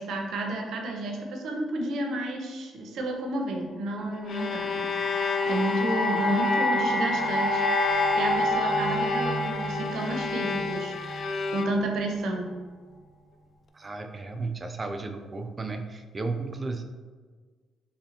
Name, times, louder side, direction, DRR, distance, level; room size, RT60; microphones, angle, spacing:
voice 1, 0.0-7.6 7.9-11.0 11.5-12.6, right 1 dB, 70° right, 2 dB, 0.7 m, -31 dB
Bowed string instrument, 4.0-12.1, left 4 dB, 55° left, 0.3 m, -31 dB
sound 1, 4.3-11.4, left 1 dB, 75° left, 1.2 m, -28 dB
voice 2, 13.8-16.8, right 3 dB, 30° right, 6 dB, 0.4 m, -34 dB
3.1 x 2.7 x 4.2 m, 1.4 s
cardioid pair, 90°, 0 cm